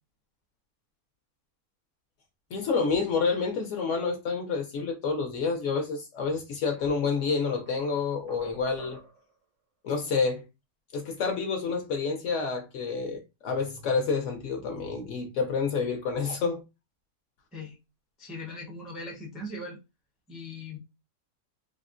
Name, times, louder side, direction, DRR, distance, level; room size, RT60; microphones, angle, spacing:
voice 1, 2.5-9.0 9.8-10.4 10.9-16.6, left 5 dB, 65° left, 0.8 m, -28 dB
sound 1, 6.2-6.3 6.8-9.4, right 3 dB, 80° right, 0.3 m, -49 dB
voice 2, 18.2-19.8 20.3-20.8, left 2 dB, ahead, 0.5 m, -39 dB
3.5 x 2.0 x 2.4 m
omnidirectional pair, 1.6 m